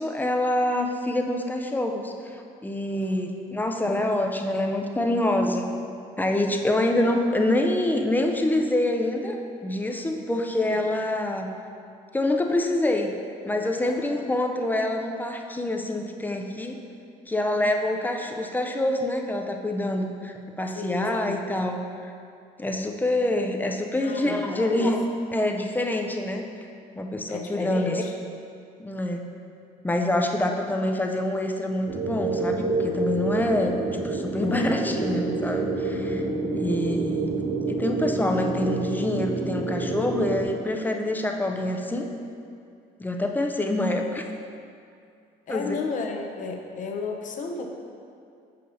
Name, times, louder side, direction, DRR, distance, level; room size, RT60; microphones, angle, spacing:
voice 1, 0.0-5.6 6.2-11.5 12.1-13.1 13.5-16.8 17.3-22.1 22.6-25.0 25.3-26.4 27.0-28.0 28.8-29.2 29.8-36.2 36.5-37.4 37.7-42.1 43.0-44.2 45.5-45.8, left 1 dB, 10° left, 3 dB, 0.4 m, -26 dB
voice 2, 20.7-21.4 24.0-24.9 27.3-28.1 34.4-34.8 41.9-42.0 45.5-47.7, left 4 dB, 50° left, 3 dB, 0.7 m, -34 dB
sound 1, 31.9-40.4, right 3 dB, 50° right, 1.2 m, -28 dB
6.5 x 2.7 x 5.5 m, 2.4 s
cardioid pair, 110°, 17 cm